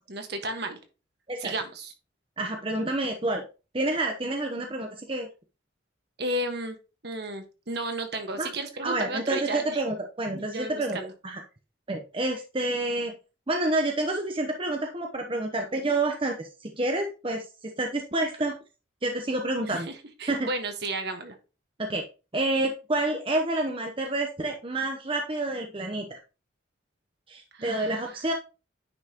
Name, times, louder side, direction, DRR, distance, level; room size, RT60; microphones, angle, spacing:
voice 1, 0.1-0.8 1.4-1.9 6.2-6.8 7.0-9.8 10.3-11.1 19.7-19.9 20.2-21.3 27.5-28.2, right 2 dB, 55° right, 6 dB, 1.4 m, -33 dB
voice 2, 2.4-3.4 3.7-5.3 8.4-8.5 8.8-11.0 11.2-11.4 11.9-13.1 13.5-18.6 19.0-19.9 20.3-20.5 21.8-22.0 22.3-26.2 27.3-28.3, right 2 dB, 25° right, 3 dB, 0.8 m, -28 dB
9.7 x 5.5 x 2.9 m, 0.31 s
head